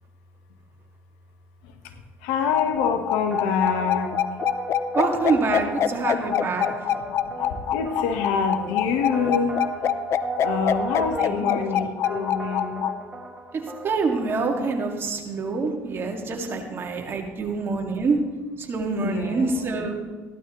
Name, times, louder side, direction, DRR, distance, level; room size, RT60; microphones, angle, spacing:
voice 1, 2.2-4.1 7.0-9.6 10.4-12.9 19.0-19.7, left 6 dB, 90° left, 6 dB, 1.3 m, -26 dB
sound 1, 2.5-12.9, left 10 dB, 50° left, 0.6 m, -24 dB
sound 2, 2.8-14.4, right 2 dB, 15° right, 2.2 m, -35 dB
voice 2, 4.9-6.7 11.2-11.5 11.8-11.9 13.5-18.2 18.6-20.0, right 4 dB, 40° right, 2 dB, 2.2 m, -26 dB
15.5 x 12.0 x 3.2 m, 1.4 s
supercardioid pair, 90°, 6 cm